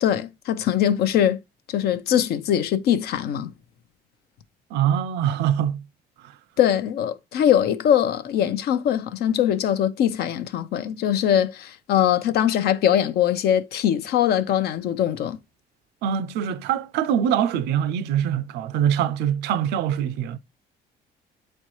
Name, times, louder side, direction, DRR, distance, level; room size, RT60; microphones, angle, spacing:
voice 1, 0.0-1.4 1.7-3.5 6.6-15.4, left 10 dB, 70° left, 0.7 m, -22 dB
voice 2, 4.7-5.8 16.0-20.4, right 9 dB, 80° right, 0.5 m, -23 dB
8.2 x 4.3 x 3.1 m
cardioid pair, 110°, 17 cm